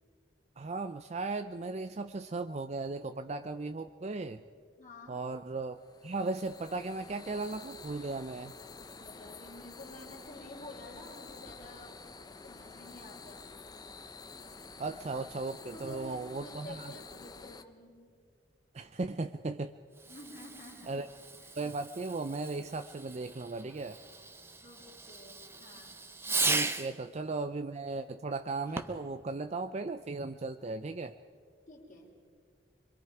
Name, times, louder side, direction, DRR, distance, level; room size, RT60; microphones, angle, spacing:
voice 1, 0.6-4.4 5.1-8.5 14.8-16.9 18.7-19.8 20.9-21.1 21.6-24.0 26.4-31.2, right 3 dB, 35° right, 9 dB, 0.5 m, -37 dB
voice 2, 4.8-5.2 8.8-12.0 12.4-13.5 15.6-18.0 20.1-21.0 24.6-26.1 31.7-32.1, left 2 dB, 40° left, -7 dB, 3.0 m, -50 dB
sound 1, 5.8-17.6, left 4 dB, 20° left, 0.6 m, -49 dB
Fireworks, 19.9-27.0 28.7-29.1, right 3 dB, 15° right, 0.8 m, -37 dB
26.0 x 23.5 x 4.8 m, 2.1 s
head